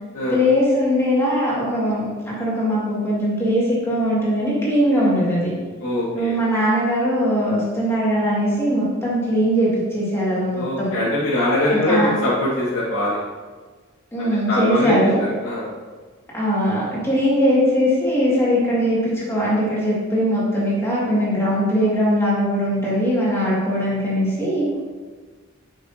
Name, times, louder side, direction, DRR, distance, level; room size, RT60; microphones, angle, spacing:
voice 1, 0.3-5.5 6.1-10.9 11.7-12.1 14.1-15.2 16.3-24.8, equal, 15° left, -7 dB, 2.2 m, -20 dB
voice 2, 5.8-6.4 10.6-13.2 14.2-15.1 15.4-15.7, left 1 dB, 70° left, -11 dB, 2.1 m, -22 dB
7.8 x 6.1 x 2.8 m, 1.5 s
head